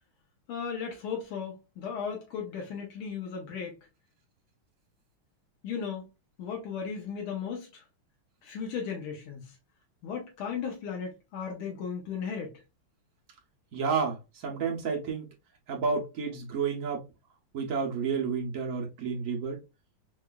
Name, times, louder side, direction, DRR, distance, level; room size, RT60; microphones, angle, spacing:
voice 1, 0.5-3.8 5.6-6.1 6.4-7.8 8.4-9.6 10.0-12.6, left 6 dB, 85° left, 1.7 m, -36 dB
voice 2, 13.7-15.3 15.7-17.0 17.5-19.6, right 5 dB, 70° right, 0.7 m, -30 dB
4.7 x 2.3 x 2.2 m
omnidirectional pair, 2.3 m